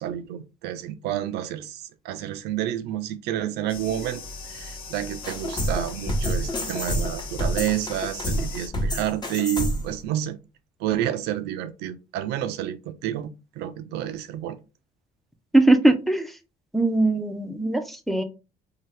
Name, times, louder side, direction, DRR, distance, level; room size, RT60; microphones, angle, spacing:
voice 1, 0.0-10.4 10.8-14.6, right 11 dB, 80° right, 0.5 m, -30 dB
sound 1, 3.7-8.7, left 4 dB, 65° left, 1.0 m, -39 dB
sound 2, 5.2-10.0, equal, 25° left, 0.9 m, -28 dB
voice 2, 15.5-16.3 16.7-18.2, right 2 dB, ahead, 0.4 m, -20 dB
2.8 x 2.3 x 3.2 m
cardioid pair, 110°, 17 cm